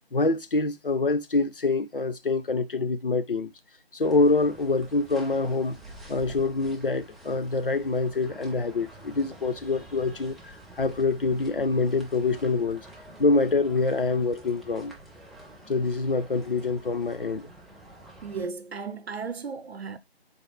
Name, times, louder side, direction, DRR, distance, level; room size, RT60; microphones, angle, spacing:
voice 1, 0.1-3.5 3.9-5.8 6.1-12.8 13.2-14.9 15.7-17.5, left 3 dB, 60° left, 0.4 m, -25 dB
sound 1, 4.0-18.5, right 1 dB, ahead, 0.4 m, -48 dB
voice 2, 18.2-20.0, right 5 dB, 75° right, 0.6 m, -35 dB
3.9 x 2.5 x 3.1 m
figure-of-eight pair, 180°, 32 cm